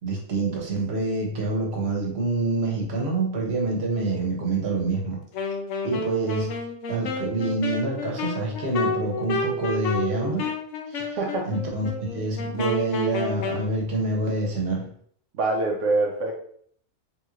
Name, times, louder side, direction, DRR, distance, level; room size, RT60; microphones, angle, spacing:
voice 1, 0.0-5.2 5.8-6.6 6.9-10.5 10.9-11.2 11.5-14.9, right 3 dB, 65° right, -1 dB, 1.1 m, -27 dB
Wind instrument woodwind instrument, 5.3-13.7, left 3 dB, 85° left, 0.9 m, -30 dB
voice 2, 11.2-11.5 15.3-16.3, right 2 dB, 85° right, 0 dB, 1.0 m, -24 dB
3.4 x 3.1 x 2.4 m, 0.62 s
omnidirectional pair, 1.2 m